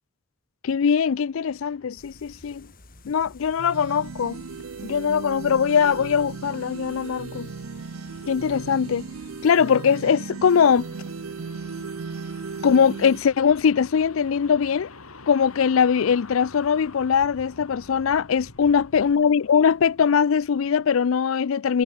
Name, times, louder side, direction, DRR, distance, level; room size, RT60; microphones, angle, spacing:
voice 1, 0.6-2.7 3.0-4.4 4.8-7.5 8.3-9.1 9.4-10.9 12.6-14.9 15.3-21.8, left 7 dB, 75° left, 0.4 m, -21 dB
sound 1, 1.4-21.0, left 3 dB, 90° left, 3.2 m, -48 dB
sound 2, 2.0-9.5, left 2 dB, 45° left, 3.1 m, -52 dB
sound 3, 3.6-13.2, right 5 dB, 85° right, 0.6 m, -36 dB
head